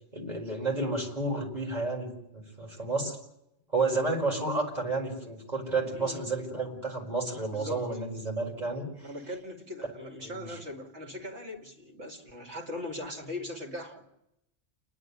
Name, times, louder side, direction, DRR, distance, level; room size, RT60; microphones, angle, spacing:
voice 1, 0.1-3.2 3.7-8.9 10.2-10.6, right 3 dB, 35° right, -2 dB, 5.4 m, -31 dB
voice 2, 5.9-6.3 7.5-7.8 9.0-14.1, left 1 dB, 65° right, 2 dB, 2.9 m, -40 dB
29.0 x 11.0 x 9.9 m, 0.85 s
omnidirectional pair, 1.2 m